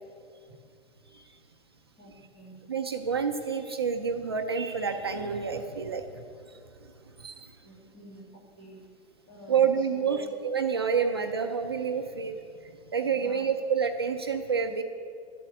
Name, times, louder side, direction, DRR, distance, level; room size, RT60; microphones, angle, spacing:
voice 1, 2.0-2.6 7.6-8.8 9.3-10.3 13.1-13.5, right 1 dB, 15° left, -1 dB, 2.0 m, -48 dB
voice 2, 2.7-6.2 7.0-7.5 9.5-12.4 12.6-14.8, right 6 dB, 25° right, 5 dB, 0.3 m, -28 dB
12.5 x 8.5 x 9.0 m, 2.3 s
supercardioid pair, 180°, 32 cm